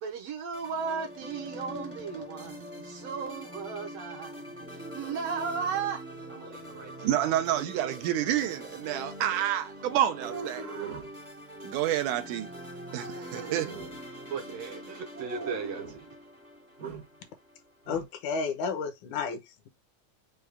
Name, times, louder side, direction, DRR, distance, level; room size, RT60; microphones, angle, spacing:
voice 1, 0.0-6.0 6.3-7.1 7.8-7.9 14.3-16.1, right 6 dB, 70° right, 1.7 m, -36 dB
sound 1, 0.5-17.9, equal, 10° right, 0.7 m, -44 dB
sound 2, 4.6-9.6, right 2 dB, 50° left, 0.5 m, -52 dB
voice 2, 7.0-10.6 11.6-12.5 12.9-13.7, right 12 dB, 90° right, 2.2 m, -29 dB
sound 3, 9.8-11.1 12.9-14.0 15.1-16.1 16.8-17.1 17.9-18.1, right 5 dB, 55° right, 0.8 m, -40 dB
voice 3, 17.9-19.7, left 5 dB, 75° left, 2.3 m, -32 dB
6.5 x 2.3 x 3.5 m
omnidirectional pair, 3.5 m